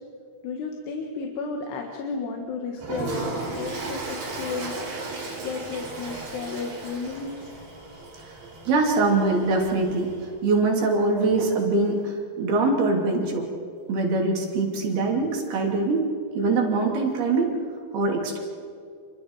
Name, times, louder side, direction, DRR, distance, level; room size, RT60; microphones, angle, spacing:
voice 1, 0.4-4.7 5.4-7.5, left 4 dB, 85° left, 2 dB, 3.7 m, -33 dB
Toilet flush, 2.8-10.3, right 3 dB, 90° right, 7.5 m, -36 dB
voice 2, 8.7-10.1 10.4-13.5 13.9-16.1 16.3-17.5 17.9-18.4, right 3 dB, 70° right, 0 dB, 5.0 m, -23 dB
29.0 x 23.5 x 4.8 m, 2.3 s
omnidirectional pair, 4.6 m